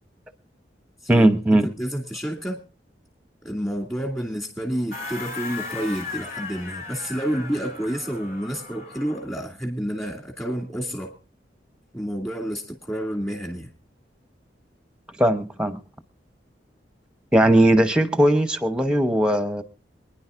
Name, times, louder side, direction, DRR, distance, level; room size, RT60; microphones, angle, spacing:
voice 1, 1.1-1.7 15.2-15.8 17.3-19.6, right 1 dB, 5° right, 10 dB, 0.9 m, -18 dB
voice 2, 1.8-2.6 3.4-11.1 11.9-13.7, equal, 15° left, 1 dB, 2.3 m, -29 dB
sound 1, 4.9-9.3, left 4 dB, 50° left, 2.7 m, -36 dB
26.5 x 10.0 x 2.5 m, 0.33 s
head